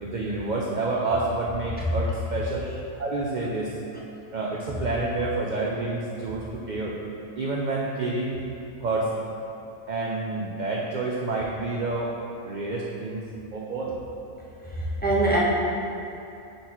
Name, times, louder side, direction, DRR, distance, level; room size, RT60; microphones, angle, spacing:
voice 1, 0.0-2.7 3.0-3.8 4.3-7.0 7.4-8.4 8.8-9.1 9.9-12.1 12.4-13.2 13.5-14.0, right 2 dB, 65° right, -3 dB, 0.4 m, -28 dB
voice 2, 14.8-15.4, right 2 dB, 10° left, -6 dB, 0.6 m, -23 dB
9.9 x 4.0 x 3.0 m, 2.7 s
omnidirectional pair, 1.5 m